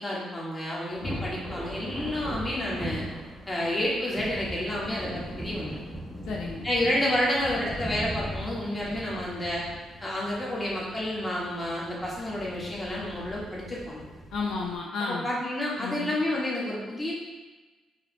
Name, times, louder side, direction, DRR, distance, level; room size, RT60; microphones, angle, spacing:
voice 1, 0.0-3.0 3.5-6.1 6.6-9.6 10.0-14.0 15.0-17.1, left 1 dB, 20° left, -5 dB, 1.4 m, -30 dB
Thunder, 0.9-14.8, equal, 5° right, 0.7 m, -39 dB
voice 2, 6.2-6.9 14.3-15.3 15.8-16.2, left 4 dB, 80° left, -2 dB, 0.6 m, -33 dB
4.7 x 3.0 x 3.3 m, 1.2 s
cardioid pair, 90°, 0 cm